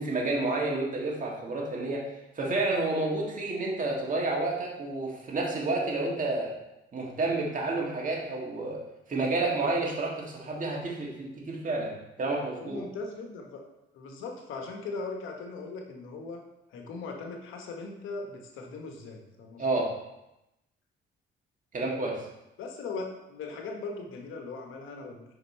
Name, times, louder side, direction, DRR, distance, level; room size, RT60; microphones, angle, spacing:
voice 1, 0.0-2.1 2.3-6.5 6.9-8.8 9.1-11.9 12.2-12.8 19.6-19.9 21.7-22.2, right 2 dB, 40° right, -2 dB, 1.7 m, -30 dB
voice 2, 12.4-13.6 13.9-16.4 16.7-19.8 22.6-25.2, left 3 dB, 80° left, 2 dB, 1.1 m, -39 dB
5.2 x 5.1 x 4.2 m, 0.91 s
cardioid pair, 90°, 20 cm